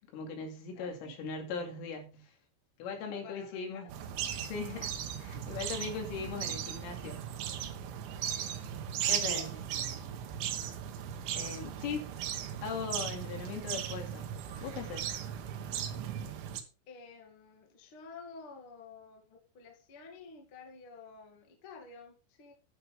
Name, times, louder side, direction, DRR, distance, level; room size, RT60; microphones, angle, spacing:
voice 1, 0.1-2.3 2.8-3.9 4.4-7.2 9.1-9.5 11.3-12.3 12.6-14.3 14.6-15.1, left 5 dB, 75° left, 4.8 m, -39 dB
voice 2, 0.7-1.2 3.0-3.9 9.0-10.2 16.9-22.5, left 4 dB, 40° left, 2.2 m, -51 dB
sound 1, 3.9-16.6, right 9 dB, 70° right, 3.3 m, -37 dB
11.0 x 10.5 x 3.6 m
omnidirectional pair, 6.0 m